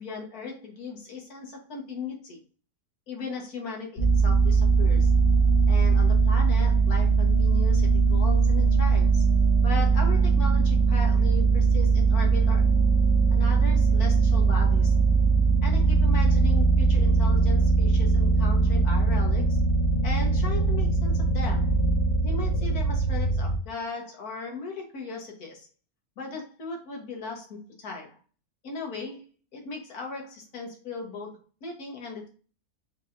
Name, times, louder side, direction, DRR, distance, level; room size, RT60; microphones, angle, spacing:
voice 1, 0.0-2.4 3.1-5.1 5.7-9.3 9.6-12.7 13.3-15.0 15.6-19.6 20.0-21.8 22.2-25.7 26.2-28.2 28.6-29.2 29.5-32.3, left 4 dB, 90° left, 1 dB, 1.8 m, -37 dB
sound 1, 4.0-23.6, right 4 dB, 45° left, 1.3 m, -21 dB
4.8 x 3.7 x 2.6 m, 0.37 s
omnidirectional pair, 1.5 m